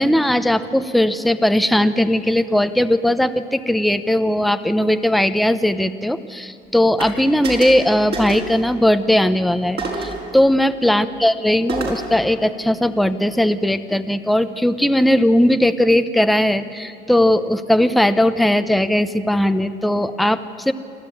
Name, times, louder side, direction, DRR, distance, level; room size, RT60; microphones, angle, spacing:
voice 1, 0.0-20.7, left 1 dB, ahead, 10 dB, 0.8 m, -18 dB
sound 1, 7.0-7.1 7.4-7.8 8.1-8.5 9.8-10.2 11.7-12.1, right 3 dB, 55° right, 5.2 m, -27 dB
26.0 x 13.5 x 8.5 m, 2.3 s
cardioid pair, 90°, 20 cm